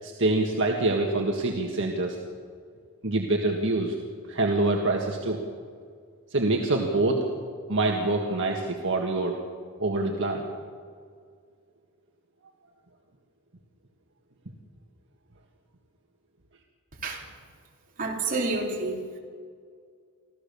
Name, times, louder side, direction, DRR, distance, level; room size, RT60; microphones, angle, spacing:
voice 1, 0.0-2.2 3.0-4.0 4.3-5.4 6.3-7.2 7.7-9.4 9.8-10.4, right 2 dB, 60° right, 1 dB, 1.7 m, -25 dB
voice 2, 18.0-19.0, right 3 dB, 40° right, 0 dB, 3.5 m, -29 dB
25.5 x 15.5 x 7.0 m, 2.1 s
head